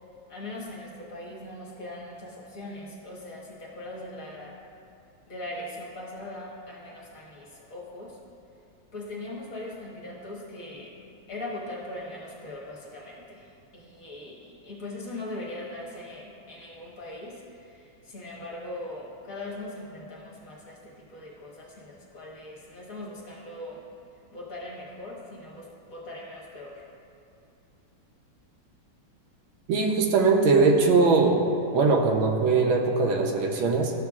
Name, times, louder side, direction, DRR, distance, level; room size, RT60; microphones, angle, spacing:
voice 1, 0.3-4.6 5.3-8.2 8.9-11.0 11.3-23.8 24.3-26.8, left 1 dB, 50° left, -4 dB, 1.5 m, -40 dB
voice 2, 29.7-31.4 31.7-33.9, right 4 dB, 85° right, 1 dB, 1.6 m, -21 dB
12.5 x 6.7 x 2.4 m, 2.6 s
omnidirectional pair, 2.1 m